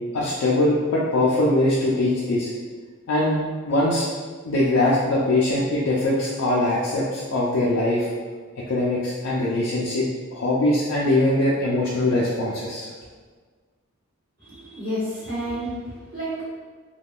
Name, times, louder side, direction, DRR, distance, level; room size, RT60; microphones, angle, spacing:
voice 1, 0.1-2.5 3.1-3.4 3.7-4.1 4.5-8.1 8.7-10.0 10.3-12.9, left 1 dB, 70° left, -6 dB, 0.4 m, -22 dB
voice 2, 14.4-16.5, equal, 55° right, -12 dB, 1.1 m, -30 dB
3.4 x 2.2 x 2.4 m, 1.5 s
head